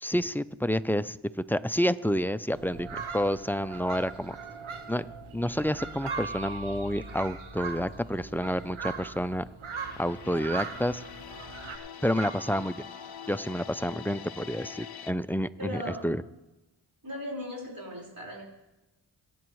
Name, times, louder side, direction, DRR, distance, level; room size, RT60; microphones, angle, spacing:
voice 1, 0.0-1.2 1.5-4.4 4.9-9.4 10.0-11.0 12.0-12.9 13.3-16.2, equal, 5° left, 14 dB, 0.4 m, -29 dB
sound 1, 2.5-11.8, right 5 dB, 90° right, 1.2 m, -40 dB
sound 2, 6.0-13.9, right 3 dB, 60° right, 1.9 m, -46 dB
sound 3, 9.7-15.1, left 8 dB, 50° left, 0.6 m, -44 dB
voice 2, 15.6-16.1 17.0-18.4, equal, 45° right, -2 dB, 4.9 m, -38 dB
24.0 x 8.7 x 3.2 m, 1.0 s
cardioid pair, 45°, 48 cm